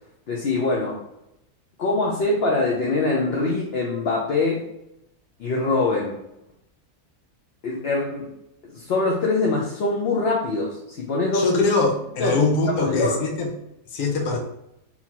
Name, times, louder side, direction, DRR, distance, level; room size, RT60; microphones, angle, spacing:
voice 1, 0.3-1.0 1.8-4.6 5.4-6.2 7.6-8.3 8.7-11.6 12.2-12.4 12.7-13.2, left 3 dB, 55° left, -3 dB, 0.8 m, -23 dB
voice 2, 11.3-13.5 13.9-14.4, left 3 dB, 85° left, 2 dB, 1.2 m, -22 dB
4.1 x 2.9 x 2.9 m, 0.83 s
omnidirectional pair, 1.5 m